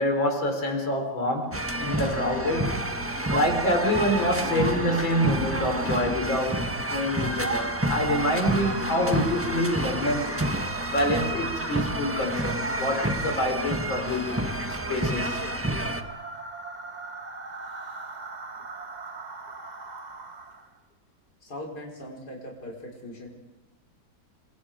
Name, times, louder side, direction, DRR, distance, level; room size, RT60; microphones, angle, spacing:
voice 1, 0.0-2.9 3.3-10.3 10.9-15.4, left 1 dB, 85° left, 5 dB, 4.9 m, -27 dB
sound 1, 1.5-16.0, right 1 dB, 10° right, 1.1 m, -29 dB
sound 2, 1.9-20.8, right 4 dB, 30° right, 1.1 m, -39 dB
voice 2, 21.4-23.3, left 1 dB, 55° left, -1 dB, 5.6 m, -40 dB
29.5 x 25.5 x 5.1 m, 1.0 s
omnidirectional pair, 2.1 m